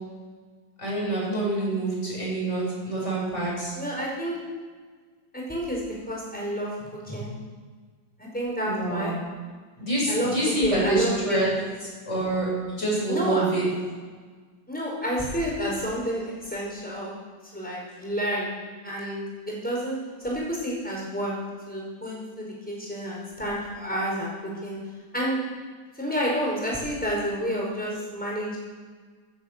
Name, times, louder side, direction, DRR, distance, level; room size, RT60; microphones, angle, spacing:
voice 1, 0.8-3.7 8.6-9.2 9.8-11.5 12.1-13.6, right 2 dB, 35° left, -4 dB, 6.5 m, -26 dB
voice 2, 3.7-4.4 5.3-7.3 8.2-9.1 10.1-10.3 10.6-11.6 13.1-13.5 14.7-17.1 17.5-18.6 18.8-19.2 19.5-21.3 21.7-24.8 25.1-25.4 26.0-28.6, equal, 5° left, -4 dB, 5.4 m, -29 dB
17.0 x 9.8 x 7.7 m, 1.5 s
omnidirectional pair, 2.1 m